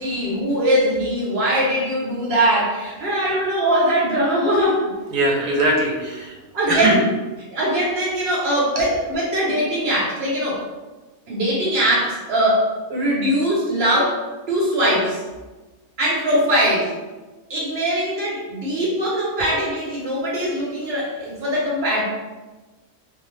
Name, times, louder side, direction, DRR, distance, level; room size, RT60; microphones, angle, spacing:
voice 1, 0.0-4.9 6.5-7.0 7.5-10.6 11.3-12.6 12.9-14.2 14.5-15.2 16.0-16.9 17.5-22.0, equal, 50° right, -5 dB, 0.9 m, -21 dB
voice 2, 5.1-6.3 6.7-7.0 8.7-8.9 19.4-19.5, right 1 dB, 85° right, -1 dB, 1.1 m, -21 dB
2.6 x 2.0 x 3.1 m, 1.2 s
omnidirectional pair, 1.5 m